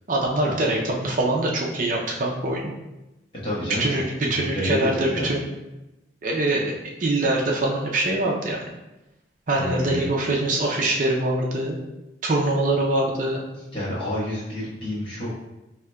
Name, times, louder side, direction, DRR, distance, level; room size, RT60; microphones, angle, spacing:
voice 1, 0.1-2.7 3.6-5.5 6.2-6.7 7.0-8.6 9.5-11.8 12.2-13.4, right 2 dB, 45° right, -1 dB, 0.5 m, -23 dB
voice 2, 3.4-5.3 9.6-10.1 13.7-15.3, equal, 30° left, -8 dB, 1.1 m, -29 dB
4.8 x 2.8 x 2.2 m, 0.98 s
head